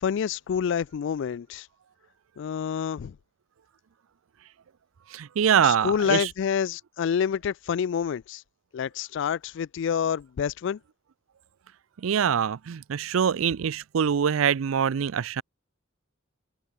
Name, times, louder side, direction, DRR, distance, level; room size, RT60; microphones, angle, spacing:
voice 1, 0.0-1.7 2.4-3.2 5.6-8.4 8.7-10.8, left 7 dB, 60° left, 0.3 m, -28 dB
voice 2, 5.1-6.3 12.0-15.4, right 7 dB, 80° right, 0.4 m, -24 dB
head